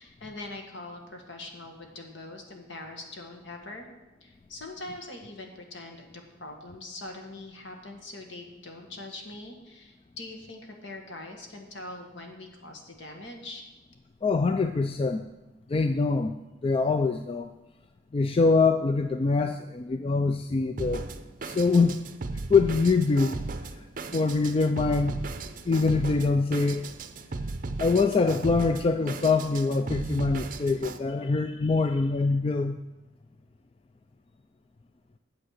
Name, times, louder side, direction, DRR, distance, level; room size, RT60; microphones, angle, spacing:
voice 1, 0.0-3.8 4.2-13.6, left 2 dB, 65° left, 3 dB, 1.7 m, -42 dB
voice 2, 14.2-15.2 15.7-16.3 16.6-17.5 18.1-21.1 21.4-22.0 22.5-23.4 24.1-25.2 25.7-26.9 27.8-32.8, left 4 dB, 30° left, 8 dB, 0.3 m, -24 dB
Drum kit, 20.8-31.0, right 3 dB, 45° right, 0.6 m, -36 dB
8.8 x 7.7 x 6.5 m, 1.1 s
head